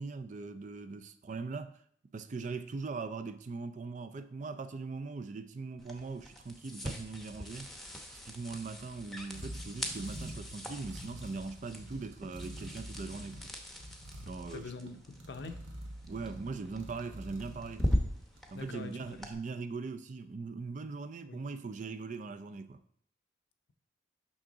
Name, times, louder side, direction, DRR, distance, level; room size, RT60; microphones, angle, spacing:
voice 1, 0.0-1.8 2.1-7.7 8.3-13.5 14.2-15.0 16.1-17.9 18.5-22.8, right 4 dB, 40° right, 0.4 m, -41 dB
sound 1, 5.8-19.3, equal, ahead, 0.8 m, -40 dB
sound 2, 8.0-18.6, equal, 75° right, 1.1 m, -47 dB
voice 2, 14.5-15.6 18.5-19.2 21.3-21.4, left 3 dB, 60° left, 0.6 m, -44 dB
6.2 x 5.8 x 3.9 m
head